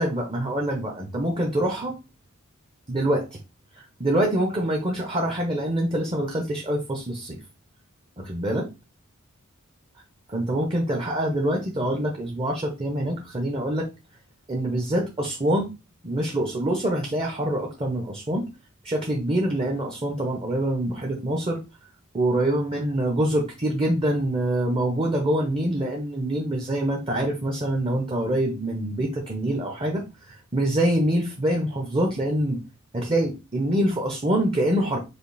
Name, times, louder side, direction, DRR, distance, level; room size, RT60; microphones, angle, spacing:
voice 1, 0.0-2.0 2.9-3.4 3.8-7.4 8.2-8.7 10.3-13.9 14.5-15.7 16.0-18.5 18.8-21.6 22.1-32.6 32.9-35.0, right 1 dB, 25° right, 1 dB, 0.8 m, -25 dB
5.1 x 2.5 x 4.0 m, 0.28 s
head